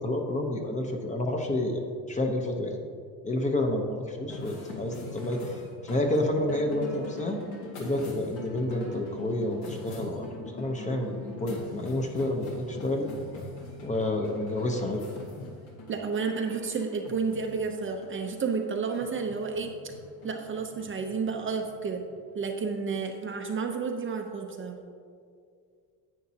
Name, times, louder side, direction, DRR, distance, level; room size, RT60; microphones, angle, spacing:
voice 1, 0.0-2.8 3.2-7.4 7.8-13.1 13.8-15.0, left 1 dB, 20° left, 3 dB, 0.8 m, -29 dB
sound 1, 4.3-22.9, left 3 dB, 75° left, 2.0 m, -43 dB
voice 2, 15.9-19.7 20.2-22.0 22.3-24.8, right 5 dB, 30° right, 3 dB, 0.7 m, -31 dB
10.5 x 8.4 x 2.8 m, 2.2 s
cardioid pair, 135°, 39 cm